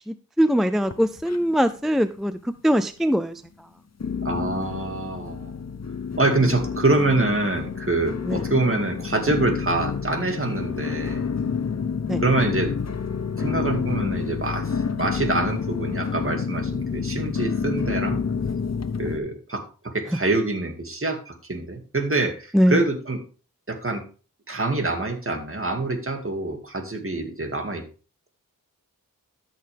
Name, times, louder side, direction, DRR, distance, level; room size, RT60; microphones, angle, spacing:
voice 1, 0.1-3.4 8.3-8.4 12.1-12.2 22.5-22.8, equal, ahead, 12 dB, 0.5 m, -22 dB
sound 1, 0.8-1.8 2.0-2.7 3.2-3.3 4.0-19.2, left 6 dB, 50° left, 1.0 m, -29 dB
voice 2, 4.2-5.5 6.2-11.2 12.2-12.7 13.4-18.2 19.0-23.2 23.7-24.0 24.5-27.8, right 2 dB, 40° right, 5 dB, 2.3 m, -25 dB
13.0 x 6.6 x 3.5 m, 0.36 s
wide cardioid pair, 55°, 34 cm